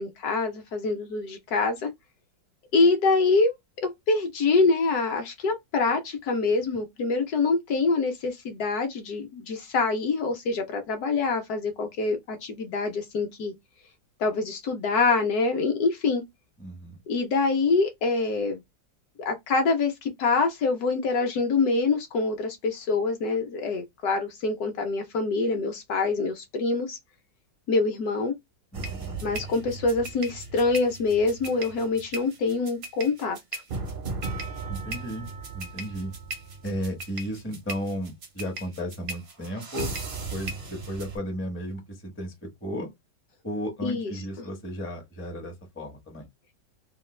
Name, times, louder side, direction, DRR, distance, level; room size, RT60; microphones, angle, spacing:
voice 1, 0.0-1.9 2.7-3.6 3.8-13.5 14.2-16.2 17.1-18.6 19.2-27.0 27.7-28.3 29.2-33.6 43.8-44.1 44.4-44.5, left 3 dB, 65° left, 1.0 m, -25 dB
voice 2, 16.6-17.0 28.7-29.2 34.7-36.1 36.6-39.9 40.3-42.9 43.4-46.3, equal, 20° left, 0.3 m, -34 dB
sound 1, 28.7-41.2, right 3 dB, 65° right, 0.5 m, -37 dB
3.0 x 2.2 x 3.1 m
omnidirectional pair, 2.0 m